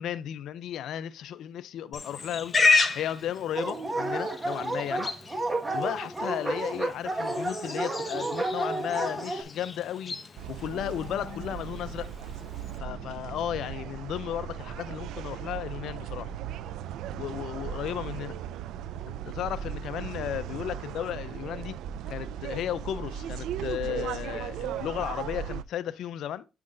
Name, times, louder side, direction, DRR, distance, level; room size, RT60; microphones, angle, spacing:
voice 1, 0.0-2.5 2.9-5.1 5.7-10.2 10.5-12.1 12.8-16.3 17.2-18.4 19.1-21.8 22.1-26.5, left 10 dB, 80° left, 0.5 m, -34 dB
Livestock farm animals working animals, 1.9-12.8, left 4 dB, 35° left, 0.9 m, -32 dB
Dog, 3.5-9.4, right 2 dB, 20° right, 1.6 m, -31 dB
sound 1, 10.4-25.6, right 9 dB, 85° right, 0.3 m, -37 dB
8.4 x 5.8 x 2.6 m
cardioid pair, 90°, 0 cm